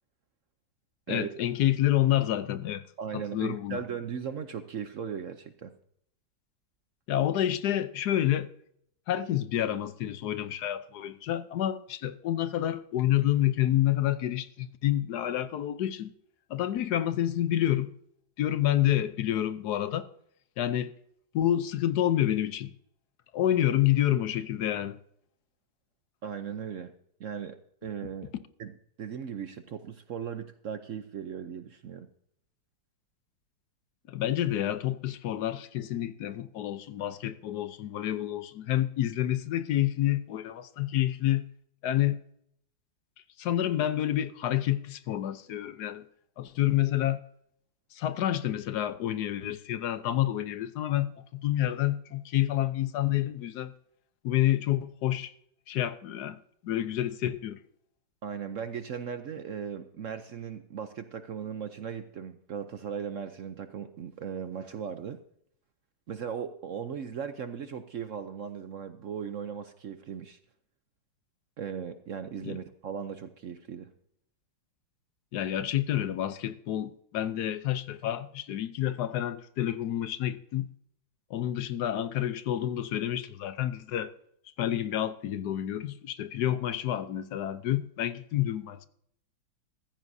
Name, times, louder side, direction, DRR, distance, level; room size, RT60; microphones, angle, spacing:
voice 1, 1.1-2.8 3.1-3.8 7.1-8.5 9.1-16.1 16.5-17.9 18.4-20.1 20.6-20.9 21.3-22.7 23.3-25.0 34.1-41.5 41.8-42.2 43.4-46.1 46.4-47.2 47.9-53.7 54.2-55.3 55.7-57.6 72.4-72.6 75.3-80.7 81.3-84.1 84.6-88.9, left 12 dB, 65° left, 1.1 m, -28 dB
voice 2, 3.0-5.7 26.2-26.9 27.2-27.6 27.8-28.3 28.6-28.7 29.0-32.1 58.2-65.2 66.1-70.4 71.6-73.9, right 7 dB, 65° right, 0.8 m, -37 dB
15.0 x 14.5 x 2.7 m
omnidirectional pair, 2.1 m